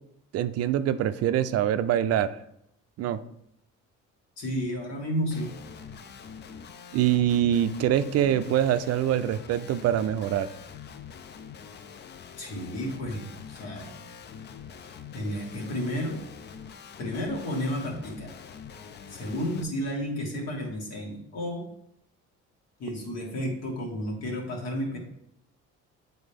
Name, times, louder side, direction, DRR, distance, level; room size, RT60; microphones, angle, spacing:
voice 1, 0.3-2.4 3.0-3.2 6.9-10.5, right 11 dB, 60° right, 12 dB, 0.4 m, -24 dB
voice 2, 4.4-5.5 12.4-14.0 15.1-16.2 17.0-18.3 19.1-21.6 22.8-25.0, equal, 60° left, -1 dB, 2.1 m, -32 dB
Guitar, 5.3-19.6, left 7 dB, 35° left, 0.4 m, -45 dB
8.4 x 4.0 x 3.4 m, 0.76 s
cardioid pair, 135°, 29 cm